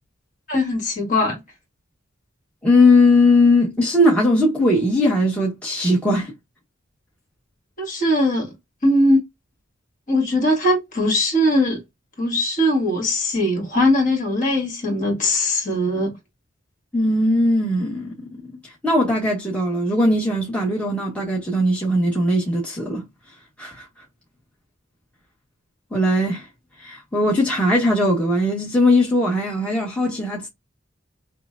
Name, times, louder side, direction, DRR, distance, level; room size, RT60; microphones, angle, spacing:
voice 1, 0.5-1.4 7.8-8.5 8.8-9.2 10.1-11.8 12.2-16.2, left 1 dB, 40° left, 2.1 m, -20 dB
voice 2, 2.6-6.3 16.9-18.4 18.8-23.0 23.6-23.9 25.9-26.5 26.8-30.5, left 1 dB, 5° left, 1.2 m, -19 dB
5.9 x 2.2 x 2.4 m
head